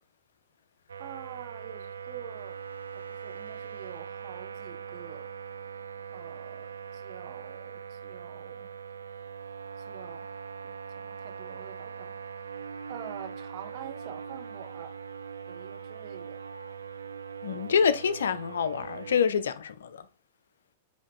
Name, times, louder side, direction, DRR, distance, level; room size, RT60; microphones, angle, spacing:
sound 1, 0.9-19.2, right 6 dB, 85° right, 0.3 m, -41 dB
voice 1, 1.0-2.6 2.9-5.3 6.1-8.7 9.8-10.3 10.6-12.2 12.9-14.9 15.4-16.4, right 11 dB, 50° right, 0.9 m, -46 dB
voice 2, 17.4-20.1, left 7 dB, 75° left, 0.4 m, -26 dB
5.1 x 2.8 x 3.5 m
hypercardioid pair, 105°, 0 cm